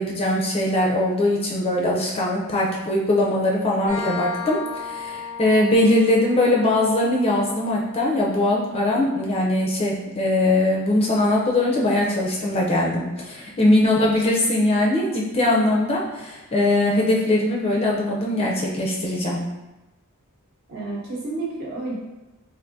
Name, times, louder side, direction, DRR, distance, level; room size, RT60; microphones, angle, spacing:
voice 1, 0.0-19.4, left 1 dB, 25° left, -3 dB, 0.4 m, -21 dB
sound 1, 3.9-11.3, left 6 dB, 10° right, 0.7 m, -38 dB
voice 2, 13.6-13.9 20.7-21.9, right 2 dB, 50° right, -5 dB, 0.9 m, -30 dB
3.5 x 2.5 x 2.6 m, 1.0 s
head